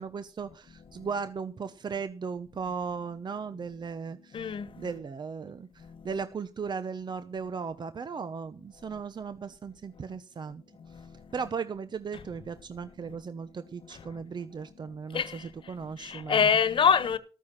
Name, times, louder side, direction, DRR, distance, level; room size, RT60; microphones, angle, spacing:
voice 1, 0.0-10.6 11.3-16.4, right 5 dB, 55° right, 0.9 m, -37 dB
voice 2, 0.9-1.2 2.6-2.7 3.6-3.7 4.1-5.0 5.8-6.2 8.9-9.0 10.0-10.5 10.8-11.5 12.1-12.4 12.7-13.4 13.8-17.2, left 7 dB, 65° left, 1.3 m, -30 dB
13.0 x 9.4 x 5.9 m
cardioid pair, 70°, 9 cm